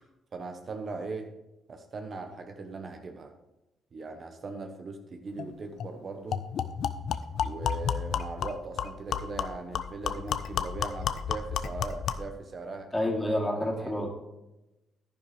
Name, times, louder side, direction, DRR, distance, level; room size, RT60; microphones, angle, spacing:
voice 1, 0.3-1.3 1.7-3.3 3.9-6.4 7.4-13.0 13.5-14.0, right 3 dB, 45° right, 5 dB, 1.0 m, -39 dB
sound 1, 5.4-5.5 5.8-5.9 6.3-12.3, left 8 dB, 70° left, 0.5 m, -32 dB
voice 2, 12.9-14.1, left 1 dB, 15° left, -1 dB, 2.5 m, -28 dB
10.5 x 10.5 x 3.4 m, 0.98 s
cardioid pair, 90°, 0 cm